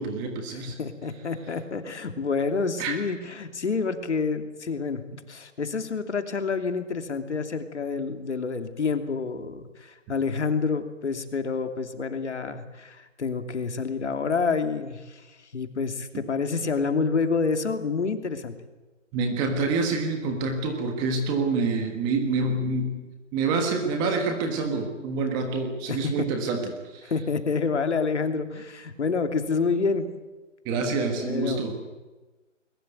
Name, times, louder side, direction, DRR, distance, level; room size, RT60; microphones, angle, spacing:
voice 1, 0.0-0.8 2.8-3.0 19.1-23.0 23.3-27.1 30.6-31.7, right 3 dB, 10° right, 5 dB, 1.4 m, -27 dB
voice 2, 0.8-5.0 5.3-18.5 25.9-26.1 27.0-30.0 31.2-31.9, left 4 dB, 60° left, 7 dB, 3.0 m, -28 dB
21.5 x 20.5 x 9.3 m, 1.2 s
hypercardioid pair, 160°, 38 cm